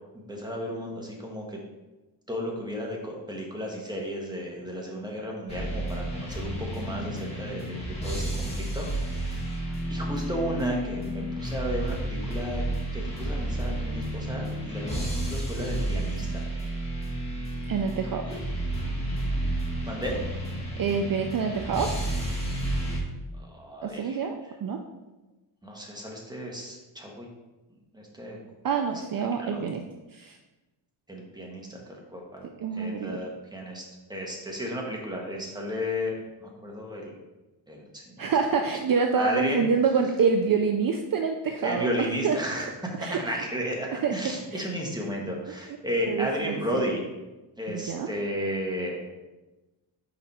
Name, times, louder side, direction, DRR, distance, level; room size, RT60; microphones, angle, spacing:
voice 1, 0.3-1.6 2.3-7.8 8.0-9.5 9.9-12.6 12.9-16.4 18.2-18.3 19.8-20.2 23.4-24.3 25.6-27.3 27.9-28.4 29.4-29.7 31.1-32.5 32.7-33.8 34.1-37.1 37.7-38.3 39.2-39.6 41.6-47.0 47.6-49.0, equal, 10° right, -1 dB, 1.6 m, -33 dB
sound 1, 5.5-23.0, right 1 dB, 15° left, 2.1 m, -31 dB
voice 2, 17.7-18.2 20.8-21.9 23.8-24.8 28.6-29.8 30.1-30.4 32.6-33.2 38.2-42.6 43.0-43.2 44.0-44.1 44.5-44.7 45.7-45.8 46.1-46.8 47.7-48.1, right 5 dB, 50° right, 5 dB, 0.6 m, -26 dB
6.9 x 5.0 x 4.3 m, 1.1 s
wide cardioid pair, 110°, 45 cm